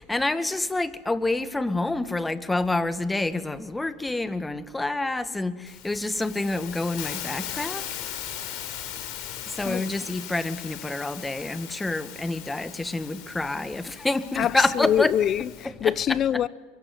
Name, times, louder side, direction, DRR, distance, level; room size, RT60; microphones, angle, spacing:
voice 1, 0.0-8.3 9.5-15.1 15.8-15.9, left 2 dB, 10° left, 1.9 m, -28 dB
Hiss, 5.7-15.7, left 10 dB, 60° left, 5.2 m, -38 dB
voice 2, 14.4-16.5, left 10 dB, 40° left, 0.8 m, -25 dB
25.5 x 23.0 x 9.6 m
hypercardioid pair, 85°, 0 cm